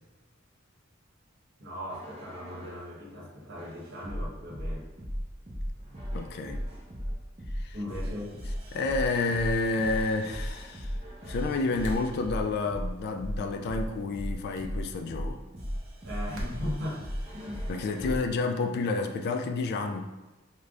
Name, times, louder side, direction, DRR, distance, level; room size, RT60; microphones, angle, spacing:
voice 1, 1.6-4.9 7.7-8.3 16.0-17.0 17.3-17.7 18.0-18.2, left 1 dB, 60° right, -7 dB, 1.2 m, -38 dB
sound 1, 1.9-2.9 3.6-18.2 18.9-19.3, equal, 30° right, 0.7 m, -36 dB
voice 2, 6.1-6.6 7.6-7.7 8.7-11.0 11.3-15.4 17.7-20.0, left 3 dB, 50° left, 5 dB, 0.3 m, -30 dB
sound 2, 11.8-12.2 14.5-14.7 16.3-16.6, equal, 85° right, 0.8 m, -35 dB
3.4 x 2.2 x 3.6 m, 1.1 s
head